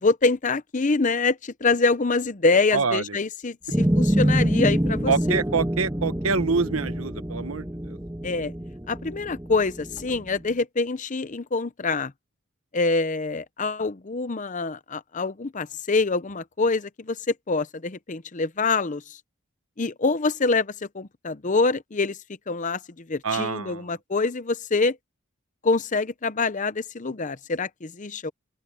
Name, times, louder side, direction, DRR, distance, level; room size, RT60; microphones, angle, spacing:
voice 1, 0.0-5.1 8.2-8.5 8.9-12.1 12.7-17.2 17.5-19.0 19.8-22.2 22.5-25.0 25.6-28.3, left 3 dB, 35° left, 0.7 m, -25 dB
voice 2, 2.7-3.2 5.1-8.0 23.2-23.9, right 4 dB, 85° right, 1.2 m, -26 dB
sound 1, 3.7-10.3, equal, 10° right, 1.6 m, -26 dB
open air
head